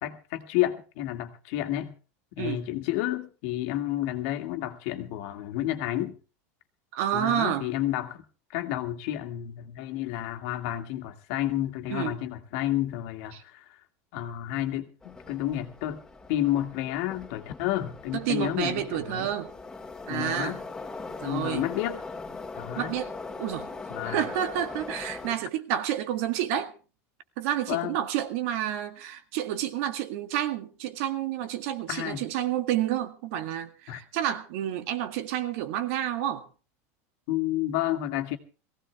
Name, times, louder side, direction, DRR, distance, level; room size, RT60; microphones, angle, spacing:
voice 1, 0.0-1.9 2.4-6.1 7.1-8.2 8.5-13.6 14.1-16.0 16.3-19.3 20.1-20.6 21.2-22.0 22.6-22.9 23.9-24.2 27.7-28.0 31.9-32.2 33.9-34.0 37.3-38.4, left 13 dB, 65° left, 2.0 m, -30 dB
voice 2, 6.9-7.7 11.9-12.2 13.3-13.4 18.1-19.5 20.1-20.6 21.2-21.7 22.8-23.7 24.0-26.7 27.4-36.5, right 11 dB, 70° right, 1.9 m, -30 dB
Subway metro underground, 15.0-25.3, left 3 dB, 5° left, 2.9 m, -40 dB
19.5 x 16.0 x 3.5 m
supercardioid pair, 145°, 8 cm